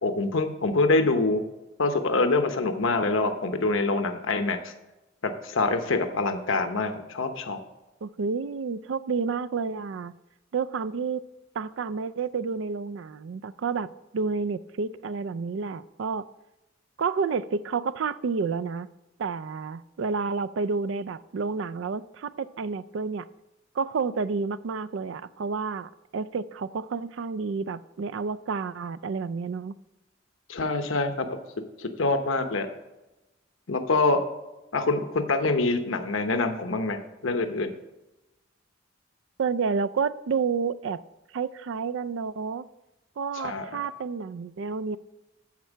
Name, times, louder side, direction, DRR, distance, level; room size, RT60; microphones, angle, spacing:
voice 1, 0.0-1.4 1.8-4.7 5.2-7.6 30.5-31.3 31.8-32.7 33.7-34.2 34.7-37.7 43.3-43.8, left 3 dB, 85° left, 7 dB, 0.9 m, -25 dB
voice 2, 8.0-10.1 10.5-11.2 11.6-16.3 17.0-18.9 19.2-23.3 23.7-29.8 39.4-41.0 41.3-42.7 43.2-45.0, right 5 dB, 70° right, 14 dB, 0.4 m, -30 dB
13.0 x 4.5 x 7.3 m, 1.0 s
head